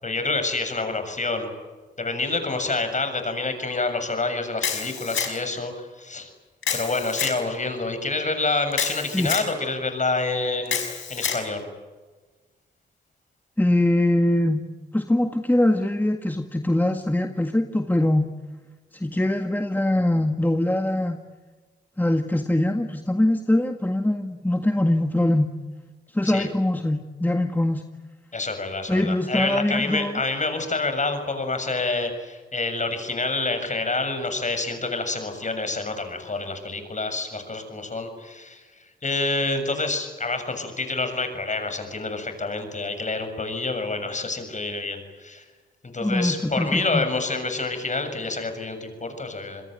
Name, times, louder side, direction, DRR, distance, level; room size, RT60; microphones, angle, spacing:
voice 1, 0.0-1.5 2.0-6.3 6.7-10.8 11.1-11.7 26.2-26.5 28.3-45.5 45.8-49.6, left 3 dB, 40° left, 8 dB, 7.1 m, -27 dB
Camera, 4.6-5.6 6.6-7.4 8.7-9.5 10.7-11.4, left 7 dB, 75° left, 5.9 m, -28 dB
voice 2, 13.6-14.6 14.9-18.3 18.9-21.2 22.0-25.5 26.1-27.8 28.9-30.2 46.0-47.1, left 1 dB, 10° left, 5 dB, 1.9 m, -22 dB
27.0 x 21.5 x 9.2 m, 1.3 s
cardioid pair, 55°, 20 cm